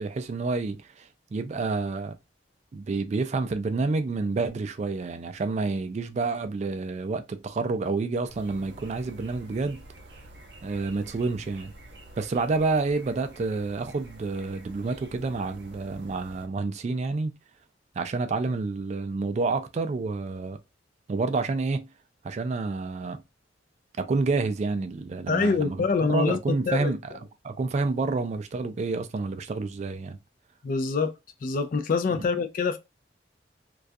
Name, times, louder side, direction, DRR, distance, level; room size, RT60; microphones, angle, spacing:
voice 1, 0.0-2.1 2.7-9.8 10.6-11.7 12.2-17.3 18.0-20.6 21.1-21.9 22.2-23.2 24.0-27.0 27.4-30.2 32.1-32.2, right 3 dB, 40° right, 0.3 m, -29 dB
sound 1, 8.3-16.5, right 1 dB, 65° right, 0.7 m, -48 dB
voice 2, 25.3-26.4 26.7-26.9 30.6-31.1 31.4-32.8, left 4 dB, 50° left, 0.3 m, -25 dB
2.3 x 2.2 x 2.5 m
head